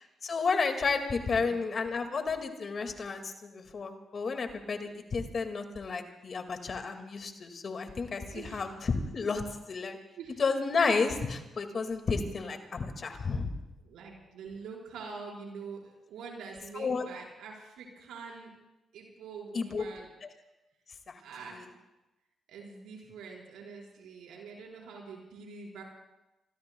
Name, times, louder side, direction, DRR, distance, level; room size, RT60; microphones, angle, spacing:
voice 1, 0.2-10.0 10.4-13.5 16.7-17.1 19.5-19.9 20.2-20.3 21.1-21.2 21.5-21.7, left 4 dB, 50° left, 6 dB, 2.1 m, -32 dB
voice 2, 1.3-1.7 8.2-8.7 10.2-10.4 13.8-18.5 18.9-20.1 21.2-21.7 22.5-25.8, right 5 dB, 80° right, -2 dB, 4.7 m, -45 dB
27.5 x 22.0 x 2.3 m, 0.99 s
hypercardioid pair, 45°, 0 cm